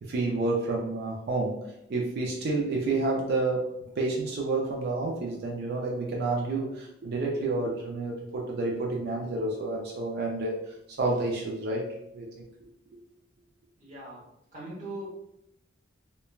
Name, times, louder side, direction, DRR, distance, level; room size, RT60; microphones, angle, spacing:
voice 1, 0.0-11.9 12.1-12.4, right 3 dB, 55° right, -1 dB, 0.4 m, -30 dB
voice 2, 13.8-14.2 14.5-15.1, right 1 dB, 40° right, -6 dB, 1.0 m, -39 dB
3.1 x 2.1 x 2.3 m, 0.81 s
head